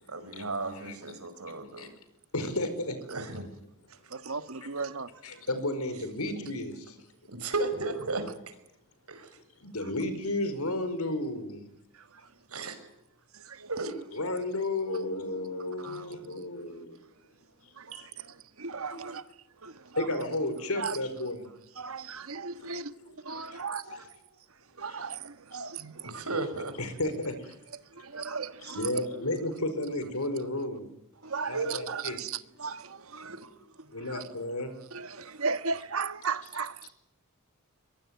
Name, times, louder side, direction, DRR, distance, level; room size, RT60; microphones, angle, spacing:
voice 1, 0.1-1.9 3.1-3.5 7.3-8.6 9.1-9.4 12.5-12.8 13.7-14.0 17.9-18.1 26.0-26.7 33.2-33.4, right 3 dB, 90° right, 5.5 m, -34 dB
voice 2, 2.3-3.0 5.2-6.9 9.6-11.6 14.1-17.0 20.0-21.5 22.6-22.8 26.8-27.5 28.7-30.8 31.5-32.2 33.9-34.7, left 1 dB, 85° left, 4.9 m, -32 dB
voice 3, 4.1-5.5 9.8-9.9 11.9-12.4 13.3-13.7 15.8-16.4 17.7-20.2 20.8-21.0 21.7-26.2 27.8-29.1 31.2-34.3 34.9-36.9, right 5 dB, 70° right, 1.4 m, -37 dB
23.0 x 22.0 x 9.5 m
head